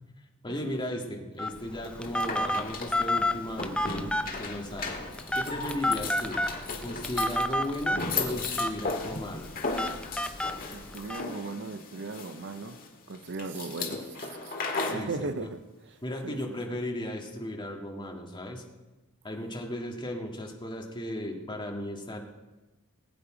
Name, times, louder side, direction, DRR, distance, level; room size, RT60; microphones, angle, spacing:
voice 1, 0.4-5.0 5.3-6.4 6.8-9.5 14.8-15.5 16.0-18.6 19.2-22.2, left 1 dB, 20° left, 1.9 m, -36 dB
Telephone, 1.4-11.2, left 1 dB, 5° left, 0.6 m, -31 dB
sound 1, 1.8-15.1, left 4 dB, 40° left, 1.9 m, -36 dB
voice 2, 10.7-12.8 13.1-15.6 15.9-16.0 16.2-16.7, right 3 dB, 55° right, 0.6 m, -38 dB
19.5 x 8.7 x 5.0 m
head